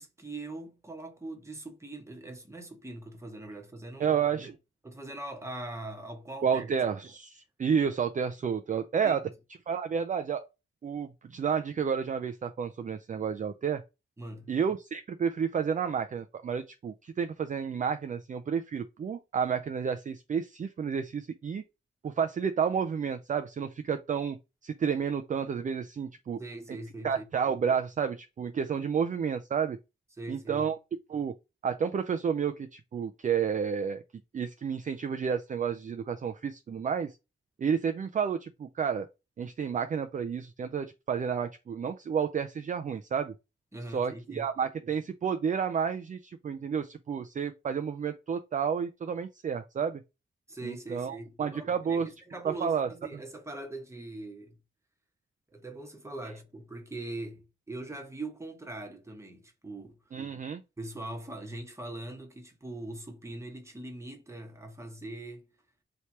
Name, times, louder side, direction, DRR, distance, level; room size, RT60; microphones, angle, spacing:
voice 1, 0.0-4.5 4.8-6.7 7.9-8.0 9.0-9.2 14.2-14.5 26.4-27.2 30.2-30.7 43.7-44.5 50.5-54.6 55.5-60.2 60.8-65.6, right 2 dB, 15° right, 1.0 m, -42 dB
voice 2, 4.0-4.6 6.4-9.2 9.7-10.5 10.8-13.8 14.5-21.6 22.0-24.4 24.6-26.4 27.0-29.8 30.3-30.8 31.1-31.3 31.6-34.0 34.3-37.2 37.6-39.1 39.4-43.3 43.9-50.0 50.6-52.1 52.4-52.9 60.1-60.6, right 7 dB, 40° right, 0.4 m, -30 dB
3.2 x 2.9 x 4.5 m
wide cardioid pair, 125°, 20 cm